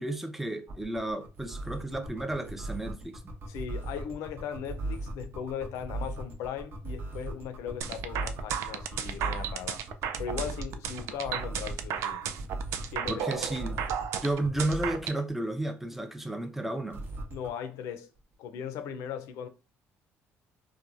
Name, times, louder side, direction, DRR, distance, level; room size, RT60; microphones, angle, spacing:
voice 1, 0.0-3.2 13.1-13.9 14.2-17.0, right 1 dB, 5° right, 0.4 m, -32 dB
sound 1, 0.7-15.1 16.9-17.5, right 2 dB, 45° right, 0.8 m, -38 dB
voice 2, 3.5-9.8 10.2-12.2 12.9-13.2 17.3-18.1 18.4-19.5, left 8 dB, 80° left, 0.5 m, -38 dB
sound 2, 7.8-15.2, right 9 dB, 70° right, 0.3 m, -33 dB
3.1 x 2.2 x 2.5 m
cardioid pair, 110°, 5 cm